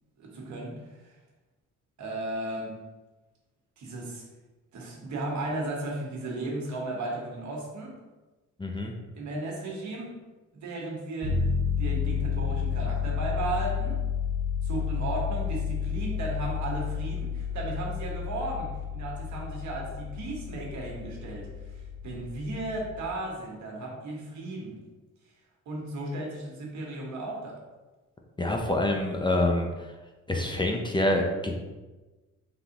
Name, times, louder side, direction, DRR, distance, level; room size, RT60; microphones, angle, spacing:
voice 1, 0.2-1.2 2.0-2.8 3.8-4.2 4.7-8.0 9.1-10.1 10.5-11.4 11.8-14.0 14.6-24.8 25.6-27.6, right 2 dB, 70° right, -2 dB, 1.3 m, -35 dB
voice 2, 8.6-8.9 28.4-29.9 30.3-31.5, left 1 dB, 15° left, 1 dB, 0.5 m, -26 dB
sound 1, 11.2-23.1, left 6 dB, 40° right, 1.1 m, -31 dB
3.9 x 3.5 x 2.9 m, 1.2 s
cardioid pair, 90°, 30 cm